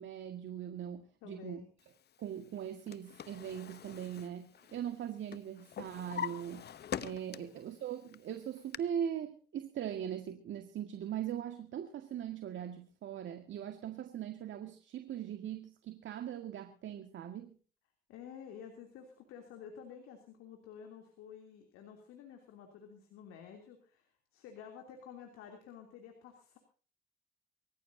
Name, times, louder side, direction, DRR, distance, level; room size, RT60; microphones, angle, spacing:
voice 1, 0.0-1.6 2.2-17.6, right 9 dB, 60° right, 6 dB, 1.9 m, -40 dB
voice 2, 1.2-1.7 7.4-7.5 18.1-26.6, left 7 dB, 75° left, 3 dB, 3.1 m, -51 dB
Drawer open or close, 2.6-5.0 5.3-7.7 8.1-8.8, left 8 dB, 50° left, 0.9 m, -43 dB
24.5 x 14.5 x 2.8 m, 0.40 s
supercardioid pair, 60°, 21 cm